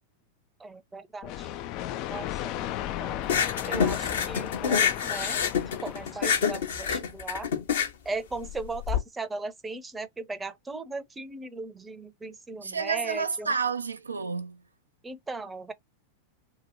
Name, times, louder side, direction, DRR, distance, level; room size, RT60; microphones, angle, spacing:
voice 1, 0.6-1.5 2.1-3.2 3.7-5.4 5.8-7.5 8.0-13.5 15.0-15.7, right 3 dB, 10° right, 0.6 m, -37 dB
sound 1, 1.2-6.9, left 13 dB, 40° left, 0.3 m, -35 dB
sound 2, 3.2-9.0, left 7 dB, 60° left, 0.9 m, -27 dB
voice 2, 12.6-14.6, right 5 dB, 75° right, 0.4 m, -30 dB
2.9 x 2.7 x 2.6 m
figure-of-eight pair, 90°, 0 cm